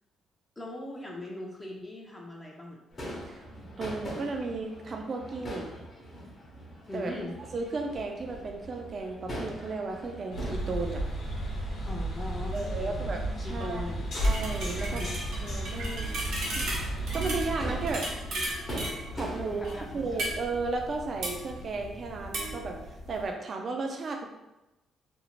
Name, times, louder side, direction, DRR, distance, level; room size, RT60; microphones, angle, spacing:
voice 1, 0.6-2.8 6.9-7.3 11.9-14.1 14.8-15.4 19.4-20.0, left 1 dB, 15° left, -1 dB, 0.4 m, -40 dB
Crowd / Fireworks, 2.9-20.2, equal, 40° left, 0.8 m, -43 dB
voice 2, 3.8-5.7 6.9-7.1 7.5-11.0 12.5-13.8 14.2-15.0 15.4-16.6 17.1-18.1 19.1-19.6 19.9-24.3, right 3 dB, 50° right, 3 dB, 0.3 m, -34 dB
sound 1, 10.3-18.0, right 1 dB, 75° left, 0.8 m, -33 dB
sound 2, 14.2-23.3, right 1 dB, 80° right, 0.8 m, -37 dB
2.5 x 2.0 x 2.9 m, 0.98 s
cardioid pair, 90°, 0 cm